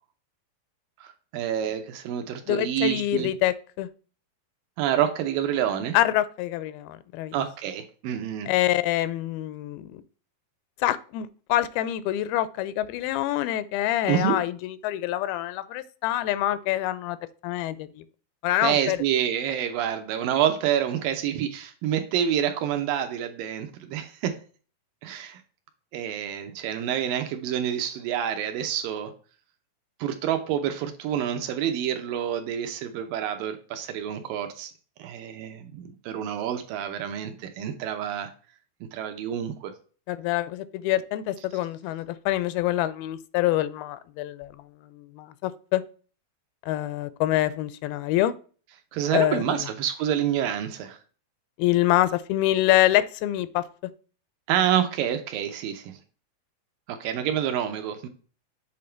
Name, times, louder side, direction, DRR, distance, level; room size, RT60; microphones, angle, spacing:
voice 1, 1.0-3.3 4.8-6.0 7.3-8.5 14.1-14.4 18.6-24.4 25.0-25.4 25.9-29.1 30.0-34.7 35.0-38.3 38.9-39.7 48.9-51.0 54.5-56.0 56.9-58.1, right 10 dB, 75° right, 2.3 m, -28 dB
voice 2, 2.5-3.9 5.9-7.3 8.5-10.0 10.8-17.2 17.4-18.0 18.4-19.0 40.1-44.6 44.9-45.8 46.6-48.3 49.1-49.6 51.6-53.6, left 14 dB, 85° left, 2.4 m, -26 dB
7.7 x 3.6 x 4.3 m
omnidirectional pair, 4.3 m